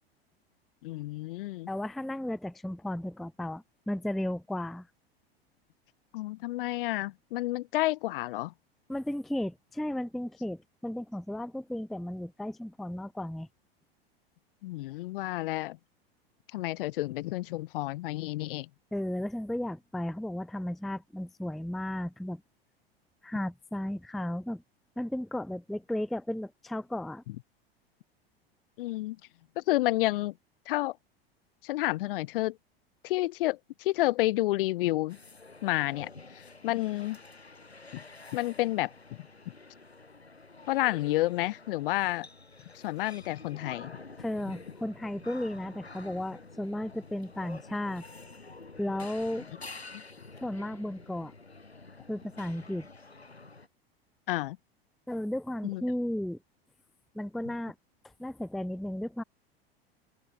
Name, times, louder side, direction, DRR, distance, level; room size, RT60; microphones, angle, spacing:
voice 1, 0.8-1.7 6.1-8.5 14.6-15.8 16.5-18.7 28.8-29.2 29.6-30.3 30.7-31.0 31.6-32.6 33.0-35.2 35.6-37.2 37.9-38.0 38.3-38.9 40.7-42.3 42.8-43.9 49.9-50.0 54.3-54.6 55.6-55.8, left 18 dB, 60° left, 1.3 m, -30 dB
voice 2, 1.7-4.9 8.9-13.5 18.9-22.4 23.2-24.6 25.0-27.2 44.2-48.0 48.8-49.5 50.4-51.3 52.1-52.9 55.1-56.4 57.1-57.7 58.2-59.2, left 1 dB, ahead, 0.5 m, -34 dB
sound 1, 35.1-53.7, left 3 dB, 90° left, 6.9 m, -49 dB
open air
figure-of-eight pair, 85°, 31 cm